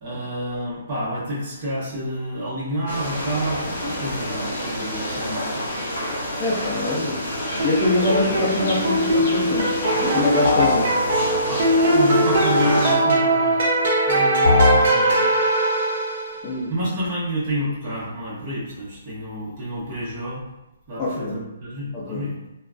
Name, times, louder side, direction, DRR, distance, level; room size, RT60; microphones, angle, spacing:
voice 1, 0.0-5.7 11.4-13.6 14.0-15.3 16.7-20.4 20.9-22.4, equal, 25° right, -8 dB, 1.0 m, -29 dB
sound 1, 2.9-12.9, left 1 dB, 45° left, 1.3 m, -28 dB
voice 2, 6.4-7.2 7.6-10.9 16.4-16.7 21.0-21.4 21.9-22.3, left 2 dB, 20° left, -7 dB, 0.4 m, -24 dB
sound 2, 7.6-16.5, right 1 dB, 45° right, 0.6 m, -21 dB
sound 3, 10.4-10.9 14.4-14.9, left 4 dB, 80° left, 0.4 m, -18 dB
3.1 x 2.2 x 2.4 m, 0.97 s
hypercardioid pair, 170°, 0 cm